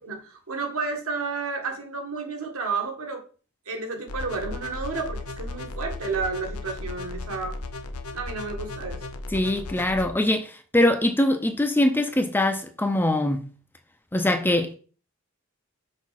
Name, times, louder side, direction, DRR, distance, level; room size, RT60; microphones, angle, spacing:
voice 1, 0.0-3.2 3.7-7.6 8.1-9.0, right 4 dB, 70° right, 1.9 m, -31 dB
sound 1, 4.1-10.1, left 2 dB, 85° left, 0.8 m, -35 dB
voice 2, 9.3-13.5 14.1-14.8, left 1 dB, 10° left, 0.6 m, -23 dB
6.2 x 5.0 x 4.2 m
head